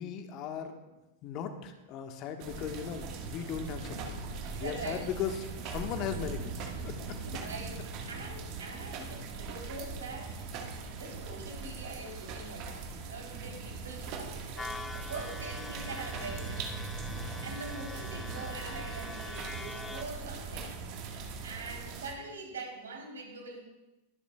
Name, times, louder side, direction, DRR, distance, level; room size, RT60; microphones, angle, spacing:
voice 1, 0.0-4.2 4.6-7.2, left 8 dB, 40° left, 6 dB, 1.4 m, -38 dB
sound 1, 2.4-22.1, right 4 dB, 40° right, 1.6 m, -40 dB
voice 2, 4.6-5.0 7.2-10.7 11.0-14.1 14.5-16.8 17.4-20.7 21.4-23.6, right 3 dB, 65° right, 1 dB, 3.5 m, -43 dB
sound 2, 14.6-20.0, left 3 dB, 10° left, 0.6 m, -44 dB
21.5 x 11.5 x 2.4 m, 1.0 s
figure-of-eight pair, 90°, 0 cm